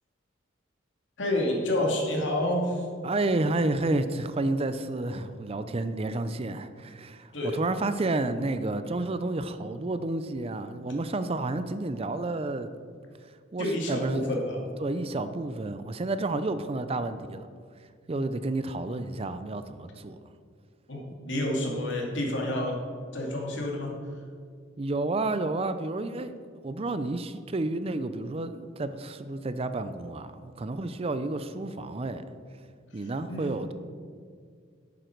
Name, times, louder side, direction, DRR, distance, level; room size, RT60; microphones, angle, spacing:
voice 1, 1.2-2.9 7.3-7.6 13.6-14.6 20.9-22.8 23.1-23.9 33.3-33.5, left 1 dB, 70° left, -1 dB, 2.4 m, -29 dB
voice 2, 3.0-12.7 13.2-14.3 14.8-17.5 18.1-20.2 24.8-26.3 26.6-32.2 32.9-33.7, right 2 dB, 30° right, 11 dB, 0.4 m, -30 dB
11.5 x 9.0 x 4.6 m, 2.1 s
head